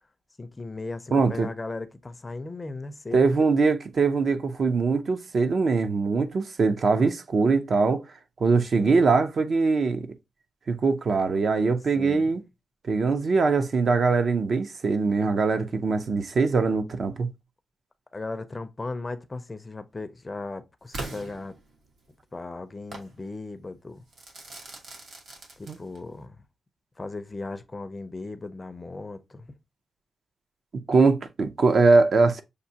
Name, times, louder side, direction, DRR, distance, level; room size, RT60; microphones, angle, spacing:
voice 1, 0.4-3.2 8.8-9.0 11.9-12.2 18.1-21.6 22.3-24.0 25.6-26.4 27.0-29.5, left 3 dB, 20° left, 0.4 m, -37 dB
voice 2, 1.1-1.5 3.1-8.0 8.4-10.1 10.7-12.4 12.8-17.3 25.7-25.8 30.9-32.4, right 4 dB, 50° right, 0.5 m, -22 dB
Crackle / Fireworks, 20.9-22.1 22.9-23.2 24.1-26.1, right 2 dB, 75° right, 1.3 m, -40 dB
6.6 x 2.6 x 2.7 m
wide cardioid pair, 145°, 0 cm